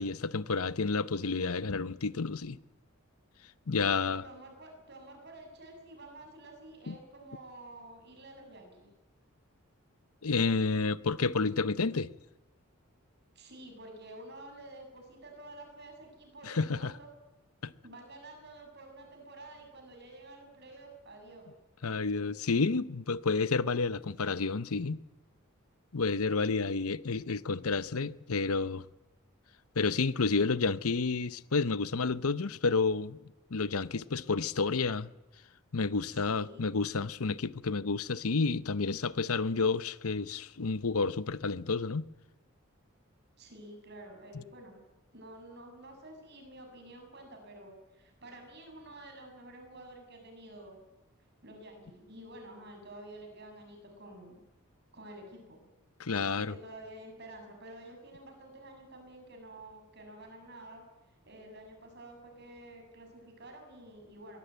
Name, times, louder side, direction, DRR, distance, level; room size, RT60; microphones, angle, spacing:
voice 1, 0.0-2.6 3.7-4.2 6.9-7.0 10.2-12.1 16.4-16.9 17.6-17.7 21.8-25.0 25.9-28.9 29.8-33.2 33.5-35.1 35.7-42.1 56.0-56.5, left 4 dB, 80° left, 0.8 m, -30 dB
voice 2, 3.8-8.9 13.4-17.1 17.8-21.5 36.1-36.7 43.4-44.8 45.1-50.8 51.4-54.4 54.9-55.6 56.2-60.8 61.3-64.4, right 1 dB, 50° right, 6.8 m, -50 dB
23.0 x 17.0 x 9.3 m
head